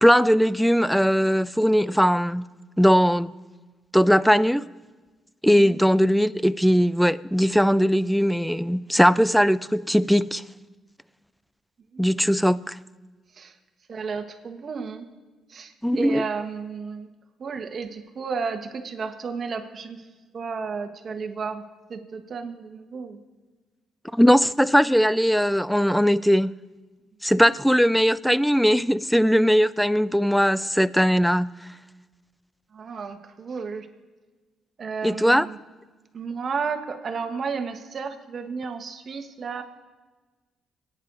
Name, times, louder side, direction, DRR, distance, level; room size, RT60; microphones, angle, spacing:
voice 1, 0.0-2.5 2.8-3.3 3.9-4.7 5.4-10.4 12.0-12.8 15.8-16.2 24.1-26.5 27.2-31.5 35.0-35.5, equal, ahead, 0.4 m, -19 dB
voice 2, 5.5-5.8 11.9-12.3 13.3-13.5 13.9-15.0 15.5-17.1 17.4-20.0 20.3-23.2 32.7-33.9 34.8-35.6 36.1-39.6, right 5 dB, 50° right, 1.5 m, -33 dB
25.0 x 9.7 x 4.0 m
cardioid pair, 90°, 0 cm